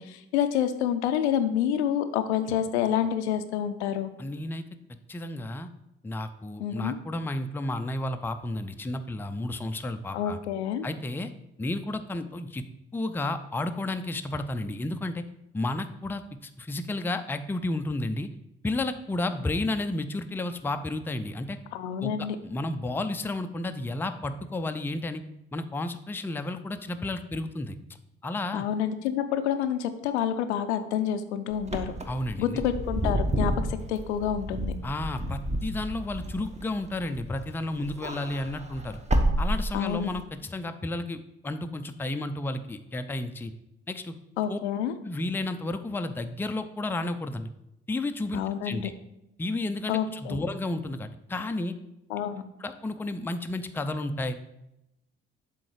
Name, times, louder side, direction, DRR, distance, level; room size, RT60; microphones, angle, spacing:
voice 1, 0.0-4.1 6.6-7.0 10.1-10.9 21.7-22.4 28.5-31.9 32.4-34.7 39.7-40.1 44.4-45.0 48.3-48.9 49.9-50.4 52.1-52.4, left 9 dB, 80° left, 9 dB, 0.5 m, -28 dB
voice 2, 4.2-4.6 5.1-5.7 6.0-10.4 10.8-11.3 11.6-12.6 12.9-15.2 15.5-18.3 18.6-21.6 22.0-25.2 25.5-27.8 28.2-28.7 32.1-32.6 34.8-39.0 39.4-43.5 43.9-44.1 44.5-44.6 45.0-47.5 47.9-48.9 49.4-51.8 52.6-54.4, left 2 dB, 5° left, 8 dB, 0.4 m, -32 dB
Wind / Car, 31.6-37.4 37.8-40.2, right 1 dB, 20° right, 0.9 m, -30 dB
7.6 x 3.8 x 4.7 m, 0.86 s
figure-of-eight pair, 45°, 33 cm